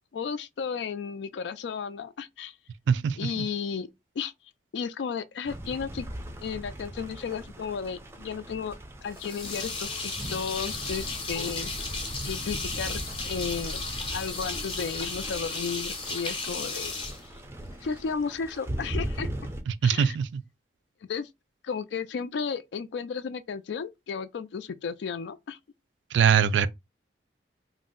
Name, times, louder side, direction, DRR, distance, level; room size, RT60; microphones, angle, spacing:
voice 1, 0.1-2.5 3.2-3.9 4.2-4.3 4.7-6.1 6.4-8.8 9.0-11.7 12.2-13.8 14.1-16.9 17.8-19.3 19.8-20.2 21.1-21.3 21.6-25.6, left 6 dB, 75° left, 0.3 m, -33 dB
voice 2, 2.9-3.4 19.7-20.4 26.1-26.7, right 7 dB, 90° right, 0.3 m, -23 dB
sound 1, 5.4-19.6, right 1 dB, 15° right, 0.4 m, -39 dB
sound 2, 9.1-17.9, left 3 dB, 30° left, 0.6 m, -35 dB
2.6 x 2.0 x 3.7 m
head